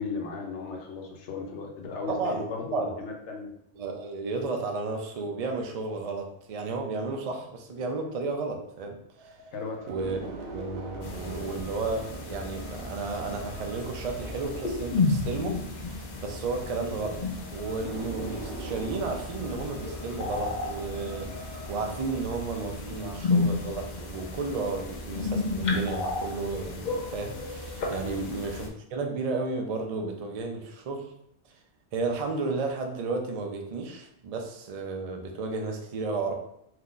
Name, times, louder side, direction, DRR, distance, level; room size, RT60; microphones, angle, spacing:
voice 1, 0.0-3.5 9.5-9.9 28.0-28.2, left 4 dB, 85° left, 1 dB, 1.0 m, -36 dB
voice 2, 2.1-3.0 3.8-9.4 9.9-10.2 10.5-17.2 17.5-31.1 31.9-36.3, right 3 dB, 55° right, 3 dB, 0.4 m, -33 dB
sound 1, 9.2-23.9, right 2 dB, 70° right, 0.8 m, -43 dB
sound 2, 11.0-28.7, left 3 dB, 50° left, 0.6 m, -33 dB
2.8 x 2.4 x 3.7 m, 0.74 s
omnidirectional pair, 1.1 m